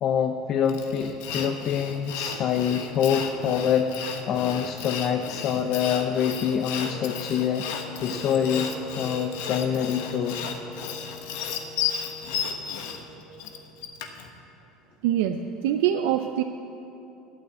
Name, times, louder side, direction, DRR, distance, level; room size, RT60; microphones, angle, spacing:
voice 1, 0.0-10.4, left 8 dB, 45° left, 6 dB, 0.6 m, -26 dB
Sawing, 0.7-14.3, left 7 dB, 85° left, 1.2 m, -34 dB
Wind instrument woodwind instrument, 6.1-14.1, equal, 25° right, 2.0 m, -44 dB
voice 2, 15.0-16.4, right 10 dB, 85° right, 6 dB, 0.5 m, -24 dB
12.0 x 9.1 x 8.5 m, 2.9 s
cardioid pair, 135°, 0 cm